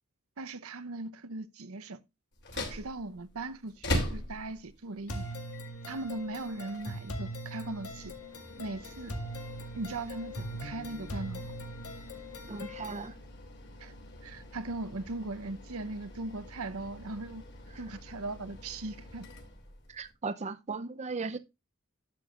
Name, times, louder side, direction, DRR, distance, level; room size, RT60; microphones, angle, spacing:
voice 1, 0.4-2.0 2.5-5.3 5.9-8.2 8.6-9.1 9.7-11.5 13.8-13.9 14.2-17.4 17.8-19.3, right 2 dB, 80° right, 0.8 m, -39 dB
sound 1, 2.3-20.1, left 1 dB, 50° left, 2.8 m, -42 dB
sound 2, 5.1-13.1, equal, 90° left, 1.9 m, -41 dB
voice 2, 12.5-13.1 19.9-21.4, right 4 dB, 30° right, 0.5 m, -37 dB
11.5 x 7.6 x 2.4 m
head